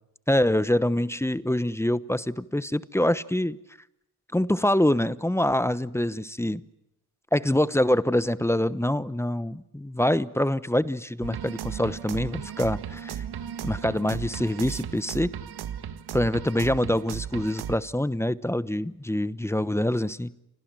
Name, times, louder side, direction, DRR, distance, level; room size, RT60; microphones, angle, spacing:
voice 1, 0.3-3.6 4.3-6.6 7.3-13.2 13.6-15.3 16.1-20.3, left 1 dB, 5° left, 1.0 m, -25 dB
sound 1, 11.2-17.8, right 9 dB, 80° right, 1.7 m, -35 dB
29.5 x 25.0 x 7.7 m
cardioid pair, 90°, 38 cm